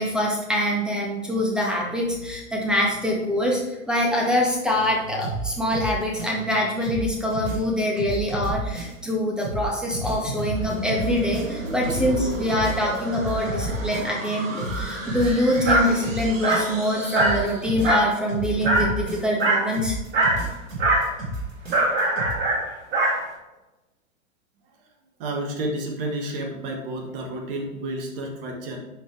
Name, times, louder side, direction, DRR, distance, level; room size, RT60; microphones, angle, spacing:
voice 1, 0.0-3.6 3.9-20.0, equal, ahead, -2 dB, 1.7 m, -24 dB
sound 1, 5.2-6.6 6.8-9.1 9.4-14.3 14.6-16.9 17.1-19.5 19.7-22.3, equal, 90° right, 2.0 m, -32 dB
sound 2, 10.2-18.1, right 2 dB, 70° right, 2.0 m, -34 dB
Dog, 15.7-15.9 16.4-16.7 17.1-17.4 17.8-18.1 18.6-18.9 19.4-19.7 20.1-20.4 20.8-21.1 21.7-23.2, right 2 dB, 25° right, 2.2 m, -21 dB
voice 2, 25.2-28.8, right 1 dB, 45° right, 2 dB, 1.5 m, -30 dB
11.0 x 4.3 x 3.4 m, 1.0 s
figure-of-eight pair, 105°, 40 cm